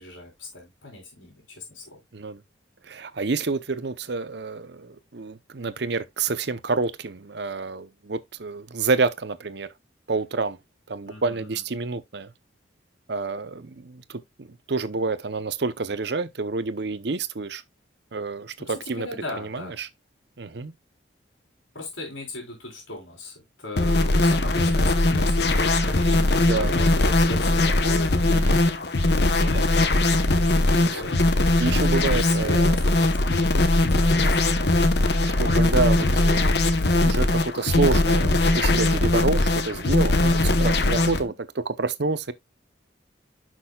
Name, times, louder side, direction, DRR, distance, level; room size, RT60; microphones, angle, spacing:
voice 1, 0.0-2.0 11.1-11.6 18.6-19.8 21.7-28.6 29.2-29.6 30.8-31.2 32.0-34.9 41.0-41.3, left 2 dB, 85° left, 3.8 m, -38 dB
voice 2, 2.8-9.7 10.1-10.6 10.9-12.3 13.1-17.6 18.1-19.1 19.4-19.9 20.4-20.7 26.4-26.7 28.3-28.6 30.8-31.0 31.6-32.8 35.2-42.3, right 4 dB, 60° right, 0.7 m, -28 dB
sound 1, 23.8-41.2, left 2 dB, 55° left, 0.9 m, -20 dB
10.0 x 6.1 x 2.3 m
head